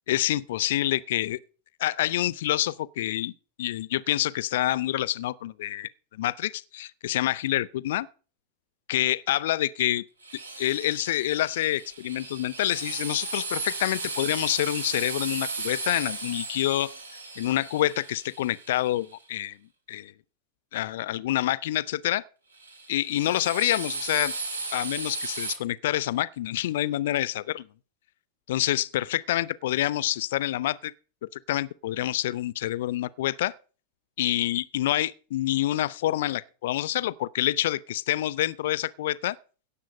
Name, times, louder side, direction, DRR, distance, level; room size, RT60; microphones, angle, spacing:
voice 1, 0.1-1.4 1.8-3.3 3.6-8.1 8.9-10.0 10.6-16.9 17.4-19.6 19.9-20.1 20.7-22.2 22.9-24.3 24.7-27.7 28.5-30.9 31.2-33.5 34.2-39.4, left 14 dB, 55° left, 0.5 m, -27 dB
Drill, 10.2-19.1 22.5-25.5, right 3 dB, 75° right, 2.8 m, -35 dB
16.5 x 7.4 x 5.2 m
figure-of-eight pair, 90°, 0 cm